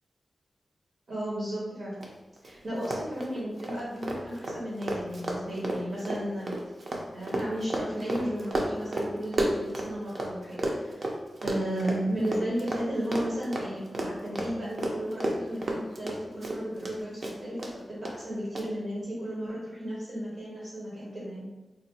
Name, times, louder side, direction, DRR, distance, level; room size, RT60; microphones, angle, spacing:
voice 1, 1.1-1.9 2.4-6.6 7.1-11.1 11.4-21.5, right 1 dB, 65° right, -6 dB, 0.9 m, -34 dB
Run, 2.0-2.1 2.4-2.5 2.8-10.3 10.6-16.9 17.2-17.7 18.1-18.2 18.6-18.7, right 1 dB, 50° right, 0.5 m, -32 dB
4.0 x 2.3 x 2.7 m, 1.2 s
wide cardioid pair, 140°, 0 cm